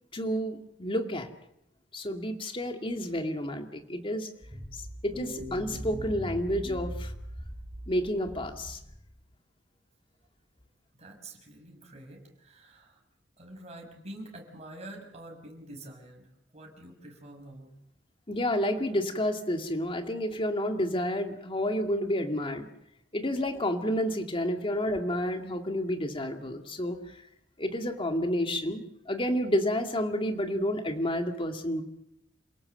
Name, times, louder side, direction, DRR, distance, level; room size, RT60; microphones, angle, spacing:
voice 1, 0.1-1.3 1.9-4.3 4.7-7.1 7.9-8.8 18.3-22.7 23.1-27.0 27.6-31.8, equal, 30° left, 5 dB, 2.2 m, -30 dB
sound 1, 4.4-9.1, equal, 10° right, 7.4 m, -40 dB
voice 2, 10.9-13.0 13.4-16.3 16.5-17.7, right 1 dB, 35° right, 1 dB, 6.0 m, -47 dB
28.0 x 17.5 x 7.8 m, 0.80 s
head